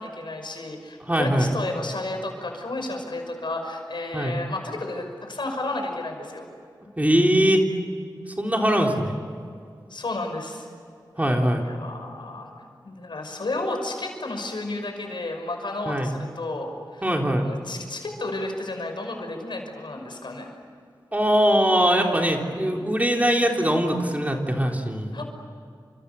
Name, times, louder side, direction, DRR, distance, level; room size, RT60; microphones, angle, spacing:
voice 1, 0.0-6.4 9.9-10.7 11.6-12.5 12.8-17.0 17.3-20.5 21.9-22.8 25.1-25.2, left 2 dB, 75° left, 3 dB, 5.9 m, -32 dB
voice 2, 1.0-1.5 4.1-4.4 7.0-7.6 8.4-9.2 11.2-11.7 15.9-16.1 17.0-17.5 21.1-25.2, equal, 20° right, 1 dB, 3.8 m, -21 dB
30.0 x 27.0 x 7.1 m, 2.3 s
wide cardioid pair, 70°, 8 cm